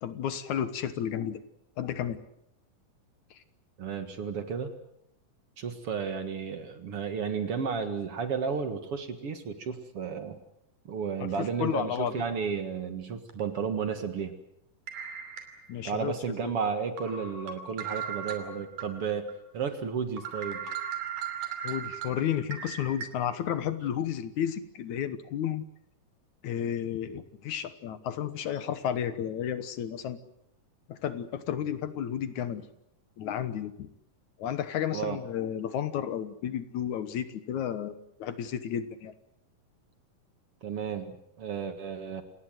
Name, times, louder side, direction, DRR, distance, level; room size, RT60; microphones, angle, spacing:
voice 1, 0.0-1.4 1.8-2.2 3.3-3.4 11.4-12.2 15.7-16.1 16.4-16.5 21.6-25.6 26.4-30.2 30.9-32.7 33.2-33.9 34.4-39.1, left 9 dB, 70° left, 12 dB, 2.5 m, -32 dB
voice 2, 3.8-4.7 5.6-10.4 10.9-14.4 15.8-19.3 19.5-20.6 34.9-35.2 40.6-42.2, right 6 dB, 50° right, 8 dB, 2.3 m, -33 dB
sound 1, 11.4-11.5 12.0-12.1 13.3-13.4 14.9-15.9 16.4-16.5 17.0-18.9 19.3-19.4 19.8-19.9 20.2-23.1, right 8 dB, 75° right, 4.4 m, -37 dB
28.0 x 19.5 x 7.8 m, 0.78 s
omnidirectional pair, 3.8 m